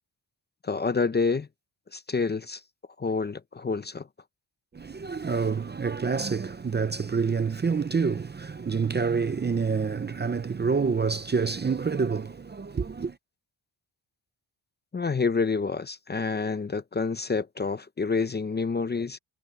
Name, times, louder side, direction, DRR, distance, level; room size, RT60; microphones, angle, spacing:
voice 1, 0.6-1.5 1.9-2.6 3.0-4.0 14.9-19.2, left 4 dB, 25° left, 0.6 m, -28 dB
voice 2, 4.7-13.2, right 5 dB, 25° right, 0.6 m, -27 dB
wide cardioid pair, 160°, 44 cm